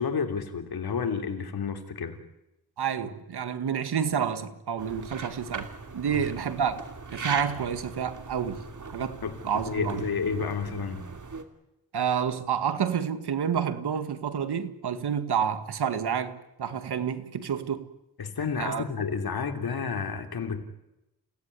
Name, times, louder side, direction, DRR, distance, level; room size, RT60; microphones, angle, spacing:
voice 1, 0.0-2.2 6.1-6.3 9.2-11.1 18.2-20.6, left 5 dB, 70° left, 3.2 m, -31 dB
voice 2, 2.8-8.6 8.9-10.0 11.9-17.9 18.6-18.8, right 7 dB, 85° right, 1.9 m, -29 dB
sound 1, 4.8-11.4, right 4 dB, 50° right, 2.9 m, -40 dB
29.5 x 18.0 x 9.8 m
cardioid pair, 70°, 38 cm